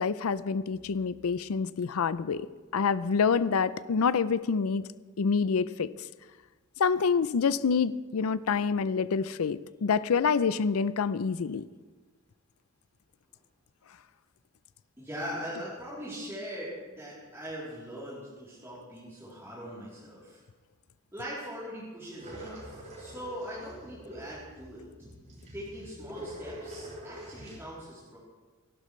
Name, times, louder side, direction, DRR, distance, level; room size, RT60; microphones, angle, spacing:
voice 1, 0.0-4.8 5.2-5.9 6.8-11.6, left 5 dB, 85° left, 15 dB, 0.5 m, -27 dB
voice 2, 15.0-20.4 21.1-24.8 25.5-28.2, equal, 15° right, -9 dB, 3.4 m, -41 dB
sound 1, 22.2-27.6, equal, 35° right, 5.0 m, -45 dB
28.0 x 12.0 x 3.2 m, 1.4 s
head